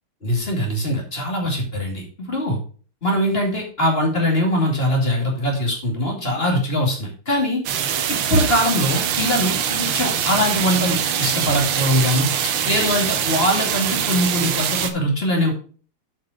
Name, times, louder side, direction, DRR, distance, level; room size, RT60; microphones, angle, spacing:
voice 1, 0.2-2.6 3.0-7.6 8.1-15.5, equal, 30° left, 0 dB, 2.6 m, -22 dB
sound 1, 7.7-14.9, right 8 dB, 85° right, 1.8 m, -23 dB
8.0 x 5.3 x 5.0 m, 0.39 s
omnidirectional pair, 2.3 m